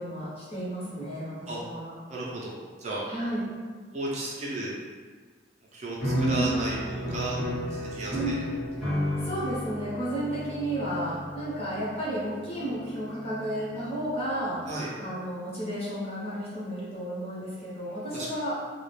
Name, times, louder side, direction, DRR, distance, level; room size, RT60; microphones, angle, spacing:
voice 1, 0.0-1.9 3.1-3.5 6.1-6.5 8.1-8.4 9.2-14.7 15.0-18.5, right 1 dB, 35° left, -8 dB, 0.8 m, -32 dB
voice 2, 2.1-3.1 3.9-4.7 5.7-7.4 7.7-8.4 14.7-14.9 17.9-18.3, right 2 dB, 40° right, -5 dB, 0.4 m, -34 dB
sound 1, 6.0-14.3, equal, ahead, 0.7 m, -34 dB
2.3 x 2.0 x 3.1 m, 1.5 s
head